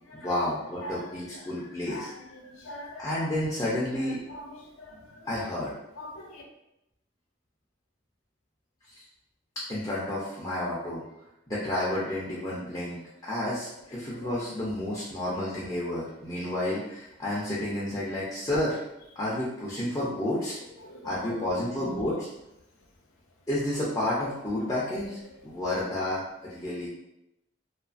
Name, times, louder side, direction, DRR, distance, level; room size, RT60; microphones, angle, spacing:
voice 1, 0.1-2.1 3.0-4.2 5.2-5.7 8.9-9.0 9.7-11.1 11.5-18.8 19.2-20.6 21.0-22.3 23.5-26.9, left 1 dB, 20° left, -8 dB, 0.5 m, -31 dB
voice 2, 1.9-3.1 4.3-5.5 6.0-6.4 20.8-21.4 21.8-22.1 25.5-25.6, left 1 dB, 90° left, 1 dB, 0.6 m, -42 dB
2.4 x 2.4 x 2.4 m, 0.85 s
head